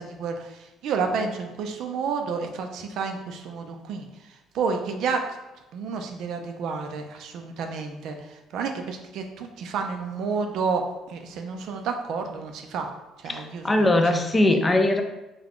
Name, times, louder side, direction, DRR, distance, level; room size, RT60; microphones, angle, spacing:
voice 1, 0.0-5.4 5.7-12.9 13.2-14.2, right 5 dB, 60° right, 5 dB, 0.4 m, -30 dB
voice 2, 13.3-15.0, left 1 dB, 15° left, 6 dB, 0.3 m, -21 dB
3.6 x 2.2 x 3.5 m, 0.99 s
cardioid pair, 150°, 0 cm